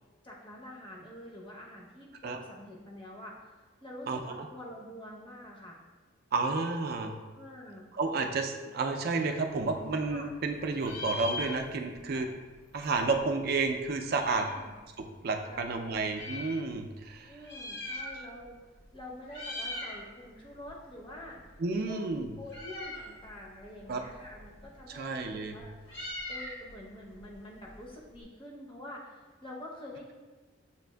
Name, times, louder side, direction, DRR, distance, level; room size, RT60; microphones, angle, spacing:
voice 1, 0.2-5.8 7.3-7.9 10.1-10.3 12.1-12.3 14.3-14.7 15.5-15.6 17.3-18.5 18.9-21.4 21.9-22.0 22.4-25.2 25.5-25.7 26.3-30.1, left 1 dB, 25° left, -3 dB, 0.7 m, -46 dB
voice 2, 4.1-4.5 6.3-7.1 7.9-12.3 12.7-14.5 15.0-17.3 21.6-22.3 23.9-24.0 24.9-25.6, right 3 dB, 50° right, 5 dB, 0.4 m, -31 dB
Meow, 9.5-10.5 10.7-12.0 12.3-12.4 12.6-14.7 15.3-16.5 17.3-18.5 18.8-19.0 19.2-20.0 20.4-28.2, left 2 dB, 60° left, 1.2 m, -42 dB
6.9 x 2.5 x 2.2 m, 1.3 s
head